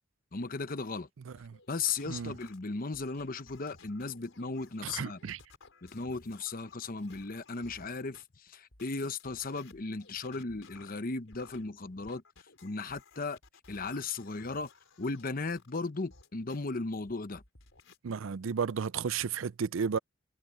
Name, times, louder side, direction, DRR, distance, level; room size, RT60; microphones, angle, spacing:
voice 1, 0.3-1.1 1.7-5.2 5.8-12.2 12.6-13.4 13.7-14.7 15.0-17.4, left 3 dB, 45° left, 0.9 m, -36 dB
voice 2, 1.3-1.6 2.1-2.3 4.8-5.4 18.0-20.0, right 6 dB, 80° right, 0.5 m, -33 dB
sound 1, 1.4-8.2 8.7-16.6 17.1-18.0, left 4 dB, 75° left, 4.4 m, -57 dB
head